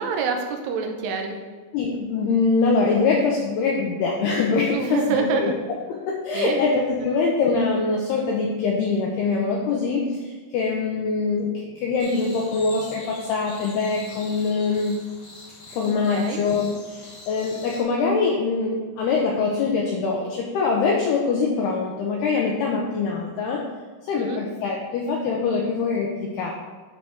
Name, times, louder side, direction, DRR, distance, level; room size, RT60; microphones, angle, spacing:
voice 1, 0.0-1.4 4.7-5.6 6.3-6.6 16.1-16.4 24.1-24.4, right 5 dB, 85° right, 3 dB, 3.4 m, -26 dB
voice 2, 1.7-5.5 5.9-15.0 15.7-23.7 24.1-26.5, left 4 dB, 90° left, -1 dB, 2.3 m, -23 dB
sound 1, 12.0-17.8, left 2 dB, 60° left, 4.4 m, -44 dB
10.0 x 5.8 x 3.6 m, 1.5 s
omnidirectional pair, 5.7 m